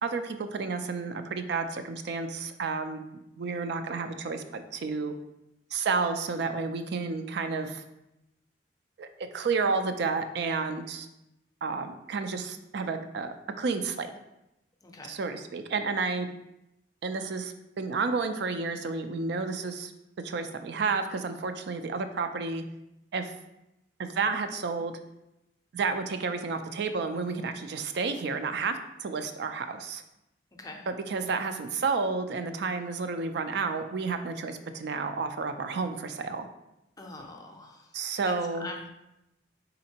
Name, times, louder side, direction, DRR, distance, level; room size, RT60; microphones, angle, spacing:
voice 1, 0.0-3.0 3.4-5.1 5.7-7.8 9.0-11.1 11.6-14.1 15.0-16.3 17.0-19.9 20.2-22.6 23.1-23.3 24.0-24.9 25.7-30.0 30.9-36.5 37.9-38.7, right 4 dB, 65° right, 8 dB, 0.4 m, -31 dB
voice 2, 14.8-15.2 30.6-30.8 37.0-37.8 38.2-38.3 38.6-38.9, left 2 dB, 20° left, 2 dB, 0.5 m, -42 dB
4.3 x 3.9 x 2.8 m, 0.89 s
head